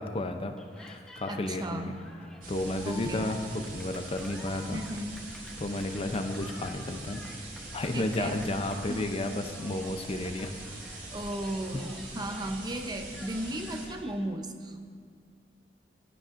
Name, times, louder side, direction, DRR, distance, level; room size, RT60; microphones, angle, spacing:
voice 1, 0.0-1.9 2.5-4.8 5.6-7.4 7.7-10.5 10.8-11.0 11.7-11.8, left 2 dB, 35° left, 6 dB, 0.5 m, -32 dB
Cheering, 0.6-14.2, left 1 dB, 5° left, 1.0 m, -51 dB
voice 2, 1.3-2.0 2.9-3.3 4.7-5.1 7.9-8.3 8.9-9.0 11.1-14.9, right 1 dB, 25° right, 5 dB, 0.8 m, -35 dB
sound 1, 2.4-13.9, right 2 dB, 55° right, 2.7 m, -43 dB
17.5 x 10.0 x 2.6 m, 2.2 s
head